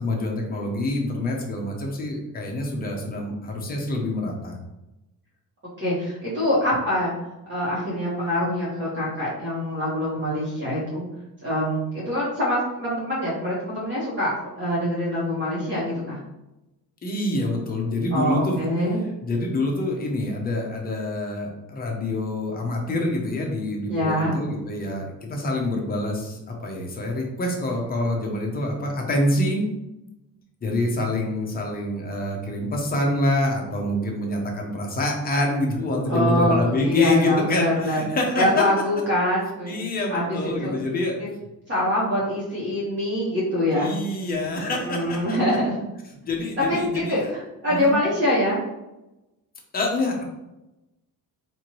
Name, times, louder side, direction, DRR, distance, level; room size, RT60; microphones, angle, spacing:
voice 1, 0.0-4.6 17.0-18.6 19.2-29.7 30.6-38.6 39.6-41.1 43.7-45.6 46.2-47.3 47.7-47.9 49.7-50.2, left 2 dB, 25° left, 0 dB, 0.6 m, -26 dB
voice 2, 5.8-7.1 7.5-11.0 11.4-16.2 18.1-19.0 23.9-24.4 36.1-38.0 38.3-39.8 40.1-40.8 41.7-44.0 44.6-45.7 46.6-48.6, left 1 dB, 30° right, -8 dB, 1.2 m, -24 dB
4.4 x 2.6 x 3.0 m, 0.94 s
cardioid pair, 180°, 38 cm